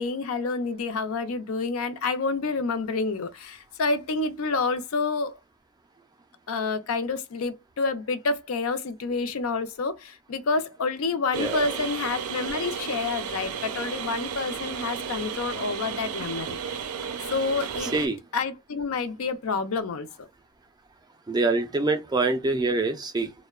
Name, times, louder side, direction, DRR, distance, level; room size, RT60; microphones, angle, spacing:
voice 1, 0.0-5.4 6.5-16.6 17.3-17.9 18.3-20.3, left 4 dB, 70° left, 0.5 m, -28 dB
sound 1, 11.3-18.1, right 7 dB, 90° right, 0.4 m, -33 dB
voice 2, 11.4-11.7 17.9-18.2 21.3-23.3, right 3 dB, 20° right, 0.3 m, -25 dB
2.7 x 2.1 x 2.3 m
head